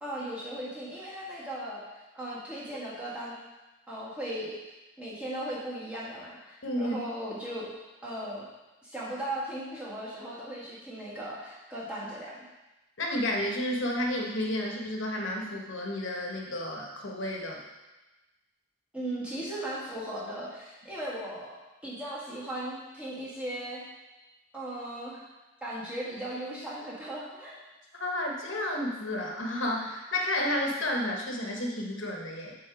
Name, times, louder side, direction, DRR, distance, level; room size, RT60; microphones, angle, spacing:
voice 1, 0.0-1.8 2.1-3.3 3.9-4.6 5.0-7.7 8.0-8.5 8.8-12.4 18.9-21.6 21.8-23.8 24.5-25.2 25.6-27.6, right 1 dB, 5° right, -8 dB, 1.9 m, -37 dB
voice 2, 6.6-7.0 13.0-17.6 28.0-32.5, left 1 dB, 70° left, 0 dB, 1.2 m, -31 dB
7.8 x 3.7 x 4.8 m, 1.1 s
head